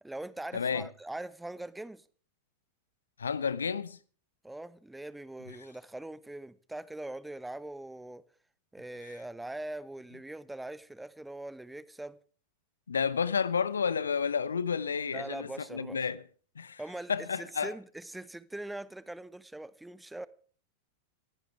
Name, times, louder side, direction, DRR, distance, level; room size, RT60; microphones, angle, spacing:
voice 1, 0.0-2.0 4.4-8.2 8.7-12.2 15.1-16.0 16.8-20.3, right 1 dB, 5° right, 1.0 m, -42 dB
voice 2, 0.5-0.9 3.2-4.0 12.9-16.2 16.6-16.8 17.1-17.7, left 6 dB, 70° left, 0.9 m, -31 dB
21.0 x 15.5 x 3.4 m
figure-of-eight pair, 90°, 0 cm